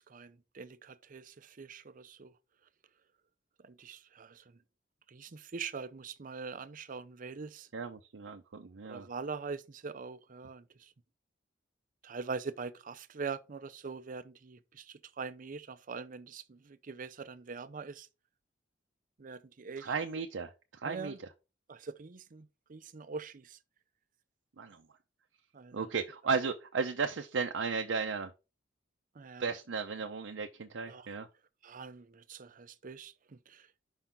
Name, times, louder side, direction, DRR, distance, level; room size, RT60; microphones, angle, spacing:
voice 1, 0.1-2.3 3.6-4.4 5.1-7.7 8.8-10.6 12.0-18.1 19.2-19.9 20.8-21.2 21.7-23.6 25.5-25.9 29.2-29.4 30.9-31.1 31.6-33.1 33.5-33.6, right 5 dB, 45° right, 0.6 m, -43 dB
voice 2, 7.7-9.1 19.8-21.1 24.6-24.8 25.7-28.3 29.4-31.3, right 5 dB, 90° right, 0.6 m, -35 dB
5.5 x 3.8 x 5.6 m
head